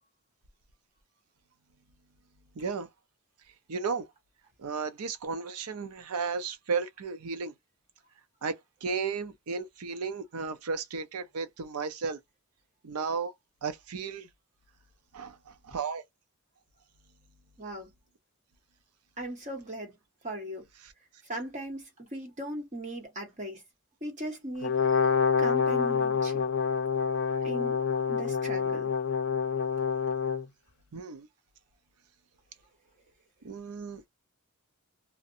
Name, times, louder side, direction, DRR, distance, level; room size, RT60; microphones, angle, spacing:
voice 1, 2.6-2.9 3.7-4.0 4.6-7.5 8.4-12.2 12.8-13.3 13.6-14.3 15.1-16.0 30.9-31.3 33.4-34.1, right 5 dB, 80° right, 0.5 m, -34 dB
voice 2, 17.6-17.9 19.2-19.9 20.2-20.6 21.2-23.6 24.0-25.0 25.4-26.4 27.4-27.8 28.1-28.9, right 1 dB, 35° right, 1.3 m, -38 dB
Brass instrument, 24.6-30.4, left 5 dB, 50° left, 0.4 m, -27 dB
2.5 x 2.1 x 2.6 m
head